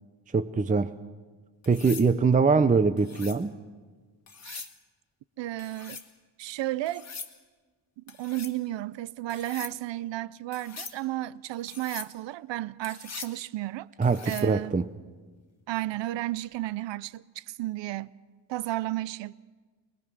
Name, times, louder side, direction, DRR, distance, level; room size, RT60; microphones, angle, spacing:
voice 1, 0.3-0.9 1.7-3.6 14.0-14.8, right 4 dB, 20° right, 0.5 m, -23 dB
sound 1, 1.6-2.1 3.0-3.4 4.3-4.8 5.6-6.1 6.9-7.3 8.1-8.6 9.3-9.8 10.5-11.0 11.7-12.1 12.8-13.4 14.0-14.5 16.4-16.7, left 5 dB, 35° left, 1.6 m, -42 dB
voice 2, 5.4-6.0 6.4-7.1 8.0-13.9 14.3-14.8 15.7-18.1 18.5-19.3, right 16 dB, 75° right, 0.6 m, -33 dB
21.5 x 21.5 x 6.1 m
cardioid pair, 100°, 44 cm